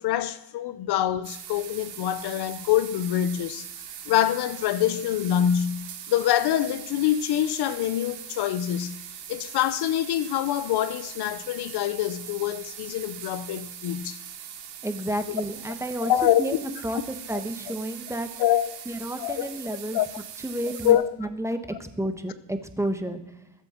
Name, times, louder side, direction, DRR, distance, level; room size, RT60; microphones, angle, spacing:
voice 1, 0.0-3.7 4.1-9.0 9.3-14.2 15.3-15.4 16.0-16.6 17.3-17.4 18.4-18.8 19.2-19.5 19.9-20.1 20.8-21.1, left 11 dB, 65° left, 0.7 m, -25 dB
sound 1, 1.2-20.9, right 9 dB, 80° right, 2.6 m, -41 dB
voice 2, 14.8-16.1 16.4-18.3 18.9-20.0 20.4-23.2, right 1 dB, 5° right, 1.2 m, -31 dB
20.5 x 8.1 x 4.4 m
cardioid pair, 110°, 42 cm